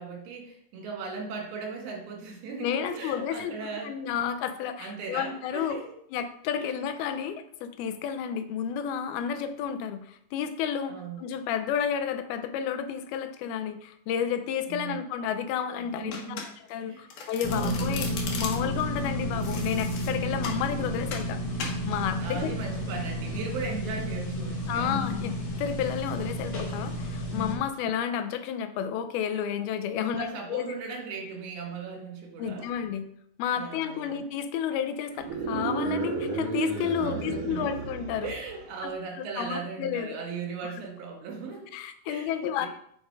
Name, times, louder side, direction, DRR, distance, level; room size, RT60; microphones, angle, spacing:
voice 1, 0.0-3.9 4.8-5.9 6.6-6.7 10.9-11.3 14.7-15.1 15.8-16.5 16.9-17.1 17.5-17.8 22.2-24.9 30.0-32.7 33.6-34.2 37.0-37.8 38.2-41.8 42.1-42.7, right 4 dB, 80° right, 0 dB, 3.8 m, -38 dB
voice 2, 2.6-3.6 3.8-5.8 6.1-16.4 16.7-18.1 18.4-21.4 21.9-22.8 24.7-30.7 32.4-33.1 33.4-38.3 38.8-38.9 39.2-40.2 40.6-40.7 41.7-42.7, left 8 dB, 85° left, 9 dB, 2.6 m, -31 dB
Domestic sounds home sounds, 16.1-16.8 17.1-18.8 19.4-20.6 21.1-21.3 21.6-21.8, left 5 dB, 65° left, 2.4 m, -38 dB
sound 1, 17.4-27.5, equal, 50° left, 1.5 m, -31 dB
sound 2, 35.1-38.8, right 5 dB, 60° right, 3.0 m, -32 dB
7.3 x 5.1 x 4.7 m, 0.68 s
omnidirectional pair, 4.4 m